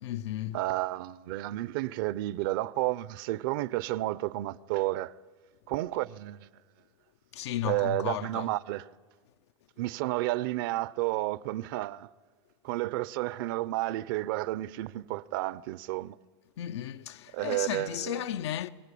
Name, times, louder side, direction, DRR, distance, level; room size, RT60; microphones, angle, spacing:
voice 1, 0.0-0.6 7.3-8.5 16.6-18.7, left 11 dB, 85° left, 0.7 m, -34 dB
voice 2, 0.5-5.1 5.7-6.5 7.6-8.9 9.8-12.1 12.6-16.2 17.3-18.2, right 17 dB, 50° right, 0.6 m, -31 dB
24.0 x 19.0 x 8.5 m
supercardioid pair, 165°, 14 cm